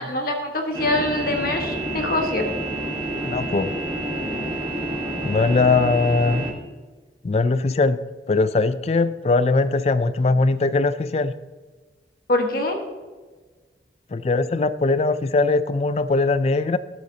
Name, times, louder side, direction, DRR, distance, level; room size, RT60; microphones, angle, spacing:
voice 1, 0.0-2.5 12.3-12.8, left 2 dB, 55° left, 3 dB, 1.3 m, -24 dB
sound 1, 0.7-6.5, right 1 dB, 25° right, 1.4 m, -28 dB
voice 2, 3.2-3.7 5.2-6.5 7.2-8.0 8.3-11.3 14.1-16.8, left 3 dB, 35° left, 14 dB, 0.4 m, -20 dB
14.0 x 7.5 x 2.8 m, 1.3 s
head